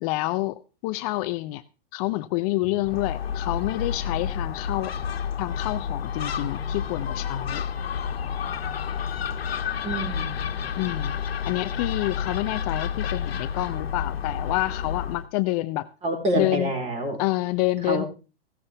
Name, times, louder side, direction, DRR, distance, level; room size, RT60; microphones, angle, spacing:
voice 1, 0.0-1.6 1.9-4.9 5.4-7.6 10.8-11.2 11.4-15.9 16.3-16.7 17.2-18.0, left 19 dB, 40° left, 11 dB, 0.7 m, -28 dB
Gull seagull, 2.8-15.3, left 7 dB, 80° left, 1.5 m, -30 dB
voice 2, 9.8-10.4 16.0-17.2 17.9-18.1, right 1 dB, 20° right, 4 dB, 4.3 m, -27 dB
16.0 x 13.0 x 3.5 m, 0.35 s
hypercardioid pair, 120°, 30 cm